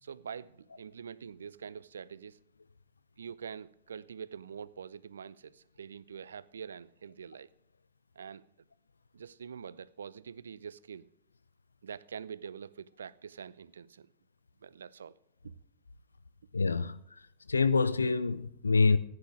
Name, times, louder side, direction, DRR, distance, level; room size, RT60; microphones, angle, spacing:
voice 1, 0.0-2.4 3.2-7.5 8.2-8.4 9.1-11.1 11.8-14.1 14.6-15.2 15.4-15.5, right 7 dB, 70° right, 0.4 m, -45 dB
voice 2, 16.5-17.0 17.5-19.0, left 4 dB, 75° left, 0.6 m, -26 dB
15.0 x 9.7 x 4.8 m
figure-of-eight pair, 90°, 0 cm